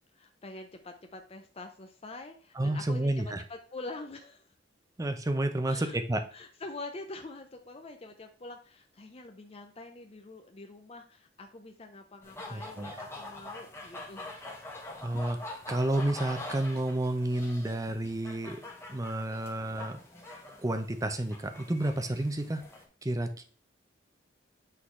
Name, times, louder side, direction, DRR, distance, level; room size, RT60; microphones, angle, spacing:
voice 1, 0.1-4.5 5.7-6.0 6.3-14.2, left 2 dB, 30° left, 5 dB, 0.6 m, -45 dB
voice 2, 2.6-3.4 5.0-6.2 12.5-12.9 15.0-18.6 18.9-20.0 20.6-22.6 23.0-23.4, right 1 dB, 20° right, 7 dB, 0.6 m, -30 dB
sound 1, 12.2-22.9, left 2 dB, 15° left, 1.2 m, -45 dB
8.4 x 3.9 x 3.2 m, 0.40 s
head